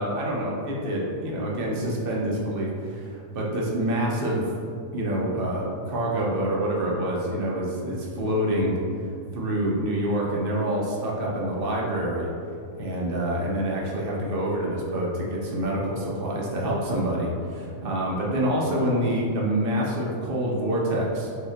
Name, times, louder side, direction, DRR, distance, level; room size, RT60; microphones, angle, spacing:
voice 1, 0.0-4.5 4.9-8.8 9.3-12.3 12.7-21.3, right 1 dB, 55° right, -3 dB, 0.6 m, -26 dB
4.5 x 2.9 x 3.8 m, 2.4 s
omnidirectional pair, 1.6 m